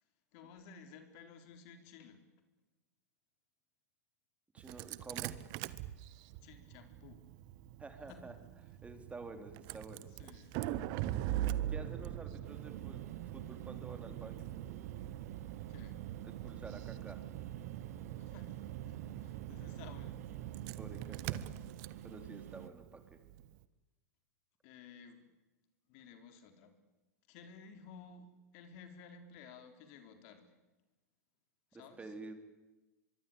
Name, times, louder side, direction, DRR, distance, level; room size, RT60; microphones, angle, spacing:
voice 1, 0.3-2.2 6.4-7.2 8.1-8.3 10.2-10.6 15.7-16.0 18.2-20.2 24.6-25.3 25.9-26.8 27.3-30.6 31.7-32.1, left 6 dB, 55° left, 7 dB, 4.0 m, -55 dB
voice 2, 4.5-5.5 7.8-8.3 8.8-10.1 11.7-14.5 16.2-17.2 20.8-21.4 22.0-23.2 31.7-32.3, right 3 dB, 15° right, 7 dB, 3.7 m, -50 dB
Engine starting, 4.6-23.5, right 13 dB, 50° right, 1.3 m, -42 dB
sound 1, 12.4-22.7, right 11 dB, 70° right, 1.1 m, -50 dB
24.5 x 23.5 x 8.7 m, 1.1 s
hypercardioid pair, 95°, 9 cm